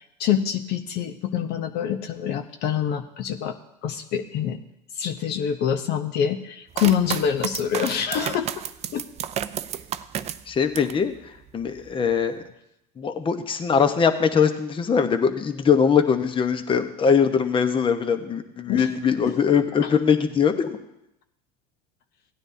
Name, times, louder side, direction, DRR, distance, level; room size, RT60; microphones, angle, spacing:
voice 1, 0.0-3.5 3.8-4.6 5.0-8.5 8.9-9.0 18.7-18.9 19.2-19.3 19.8-19.9, left 8 dB, 50° left, 7 dB, 0.7 m, -25 dB
sound 1, 6.7-11.0 11.5-12.1, right 10 dB, 30° right, 0.5 m, -32 dB
voice 2, 10.5-11.1 11.5-12.4 13.0-20.8, left 6 dB, 25° left, 9 dB, 0.9 m, -21 dB
17.0 x 9.7 x 2.7 m, 0.83 s
supercardioid pair, 105°, 21 cm